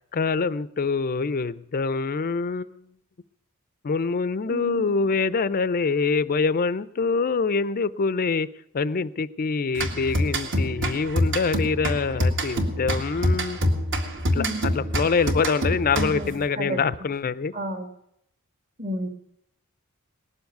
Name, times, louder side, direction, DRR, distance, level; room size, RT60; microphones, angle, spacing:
voice 1, 0.1-2.8 3.8-8.5 8.7-13.6 14.3-17.5, left 4 dB, 40° left, 16 dB, 0.5 m, -25 dB
voice 2, 4.5-5.0 14.3-14.7 15.9-16.9 17.5-17.9 18.8-19.1, right 1 dB, 40° right, 7 dB, 1.7 m, -31 dB
sound 1, 9.8-16.4, equal, 60° right, 2.0 m, -26 dB
18.5 x 7.2 x 9.2 m, 0.78 s
head